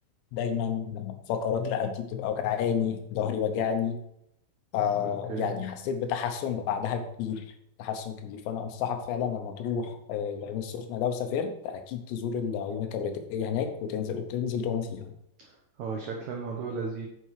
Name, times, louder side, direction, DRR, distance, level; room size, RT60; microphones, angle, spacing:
voice 1, 0.3-4.0 4.7-7.4 7.8-15.1, left 7 dB, 80° left, 7 dB, 3.1 m, -30 dB
voice 2, 5.0-5.6 15.4-17.1, right 4 dB, 85° right, 1 dB, 1.6 m, -35 dB
8.8 x 6.0 x 4.8 m, 0.77 s
omnidirectional pair, 4.9 m